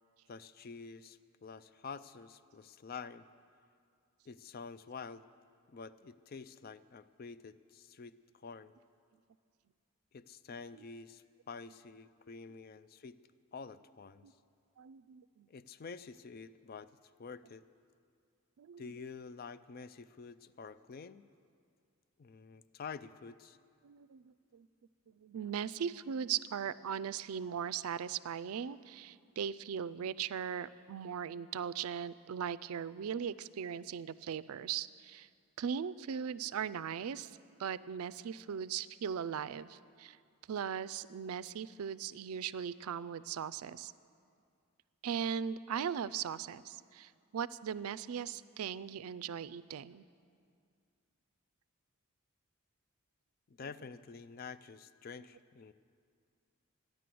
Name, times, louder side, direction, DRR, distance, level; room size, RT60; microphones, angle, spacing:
voice 1, 0.3-3.2 4.3-5.2 5.7-8.7 10.1-13.2 13.5-14.3 15.5-16.9 17.2-17.6 18.8-21.2 22.2-23.6 53.5-55.7, left 5 dB, 40° left, 15 dB, 0.4 m, -48 dB
voice 2, 14.8-15.5 18.6-18.8 23.8-24.7 25.2-35.3 35.6-37.3 37.6-40.2 40.5-43.9 45.0-50.0, right 8 dB, 80° right, 17 dB, 0.4 m, -39 dB
14.0 x 10.5 x 7.7 m, 2.2 s
head